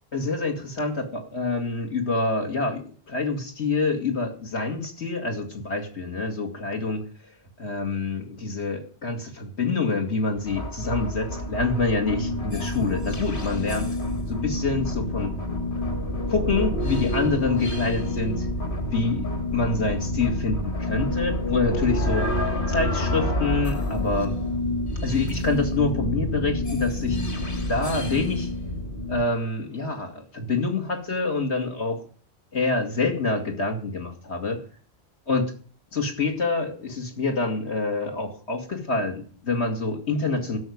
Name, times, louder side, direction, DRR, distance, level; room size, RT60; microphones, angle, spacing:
voice 1, 0.1-7.1 7.6-14.0 14.3-15.3 16.3-18.4 18.9-22.3 22.7-24.3 25.0-27.2 27.7-28.5 29.1-32.0 32.5-34.6 35.3-35.5 35.9-40.6, left 3 dB, 80° left, 3 dB, 2.8 m, -26 dB
sound 1, 10.4-29.2, left 1 dB, 50° left, 2.4 m, -28 dB
12.5 x 6.5 x 9.5 m, 0.43 s
omnidirectional pair, 1.1 m